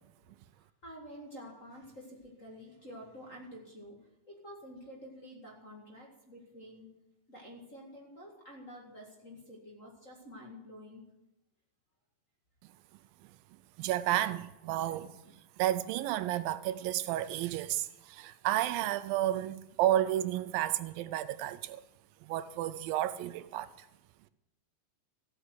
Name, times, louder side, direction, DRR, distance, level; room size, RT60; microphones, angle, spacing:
voice 1, 0.8-4.0 4.3-6.9 7.3-11.0, equal, 30° left, 1.7 m, -49 dB
voice 2, 13.8-15.1 15.6-21.8 22.3-23.7, right 13 dB, 85° right, 2.4 m, -31 dB
15.5 x 8.2 x 7.7 m
omnidirectional pair, 4.1 m